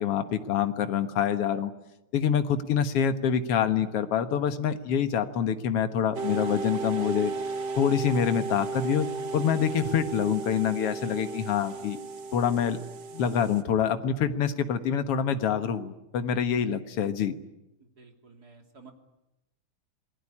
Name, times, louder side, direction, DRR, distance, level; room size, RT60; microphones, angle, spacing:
voice 1, 0.0-1.7 2.1-7.3 7.8-9.1 9.3-12.0 12.3-12.8 13.1-17.4, left 8 dB, 55° left, 9 dB, 2.1 m, -26 dB
sound 1, 6.1-13.6, right 4 dB, 55° right, 1.2 m, -35 dB
voice 2, 17.8-18.9, right 4 dB, 30° right, 4 dB, 3.1 m, -52 dB
27.5 x 20.0 x 9.9 m, 0.92 s
omnidirectional pair, 3.5 m